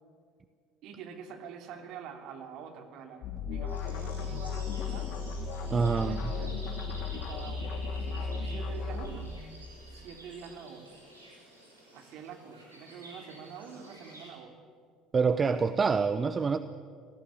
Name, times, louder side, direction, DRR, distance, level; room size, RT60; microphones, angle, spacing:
voice 1, 0.8-5.1 5.6-6.6 7.1-9.3 9.9-11.0 11.9-14.6, right 6 dB, 55° right, 6 dB, 3.0 m, -46 dB
sound 1, 3.2-9.3, left 4 dB, 55° left, 2.7 m, -35 dB
sound 2, 3.7-14.3, right 1 dB, 85° right, 5.8 m, -51 dB
voice 2, 5.7-6.3 15.1-16.6, right 5 dB, 30° right, 13 dB, 0.9 m, -26 dB
26.0 x 18.5 x 8.3 m, 2.2 s
figure-of-eight pair, 60°, 0 cm